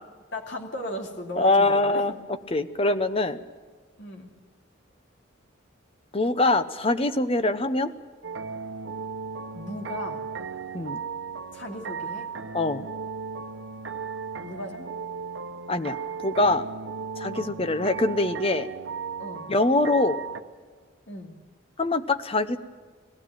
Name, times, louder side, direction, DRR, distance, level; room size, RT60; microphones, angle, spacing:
voice 1, 0.3-2.1 4.0-4.3 9.5-10.3 11.5-12.3 14.4-14.9 17.3-17.5 19.2-19.5 21.1-21.4, equal, 65° left, 2 dB, 2.7 m, -36 dB
voice 2, 1.4-2.1 2.5-3.4 6.1-7.9 10.7-11.0 12.5-12.9 15.7-16.7 17.2-18.7 19.5-20.2 21.8-22.6, left 2 dB, 30° left, 11 dB, 0.8 m, -23 dB
sound 1, 8.2-20.4, right 5 dB, 70° right, 0.9 m, -36 dB
20.0 x 15.5 x 9.1 m, 1.5 s
head